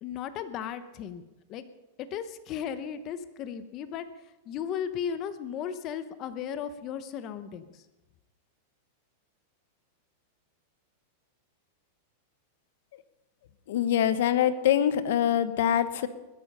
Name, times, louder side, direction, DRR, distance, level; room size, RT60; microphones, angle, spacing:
voice 1, 0.0-1.6 2.0-7.8, left 8 dB, 35° left, 11 dB, 1.0 m, -36 dB
voice 2, 13.7-16.1, left 10 dB, 70° left, 12 dB, 1.2 m, -24 dB
21.0 x 10.0 x 5.6 m, 1.0 s
supercardioid pair, 150°, 0 cm